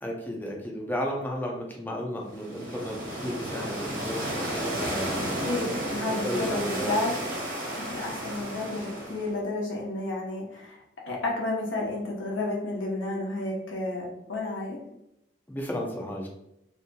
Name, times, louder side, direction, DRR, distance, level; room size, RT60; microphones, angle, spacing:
voice 1, 0.0-5.4 6.2-7.0 15.5-16.3, equal, 10° left, 0 dB, 0.4 m, -34 dB
sound 1, 2.3-9.4, right 1 dB, 45° right, 1.2 m, -32 dB
voice 2, 5.4-7.1 7.8-10.8 11.1-14.8, left 2 dB, 90° left, -2 dB, 0.8 m, -31 dB
2.7 x 2.6 x 2.2 m, 0.84 s
head